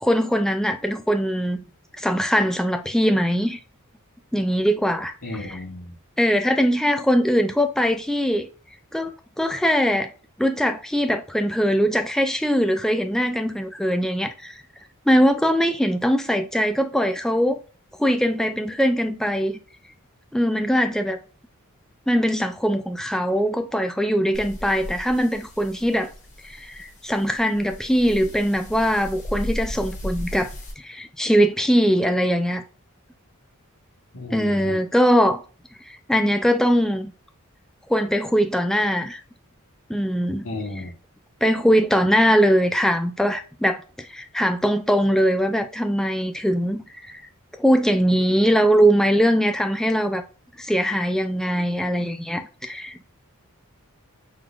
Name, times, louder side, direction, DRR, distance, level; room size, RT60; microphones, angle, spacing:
voice 1, 0.0-1.6 2.0-3.6 4.3-5.6 6.2-8.5 8.9-10.1 10.4-14.6 15.1-17.6 18.0-19.6 20.3-21.2 22.1-26.1 26.4-30.5 30.8-32.6 34.3-35.4 35.8-37.1 37.9-39.2 39.9-40.5 40.8-40.9 41.4-47.2 47.6-50.2 50.6-53.0, equal, ahead, 0.3 m, -21 dB
voice 2, 5.2-6.0 34.1-34.8 40.4-40.9, left 2 dB, 65° left, 1.2 m, -33 dB
sound 1, 24.3-30.7, equal, 30° left, 1.3 m, -36 dB
4.7 x 3.9 x 2.4 m
head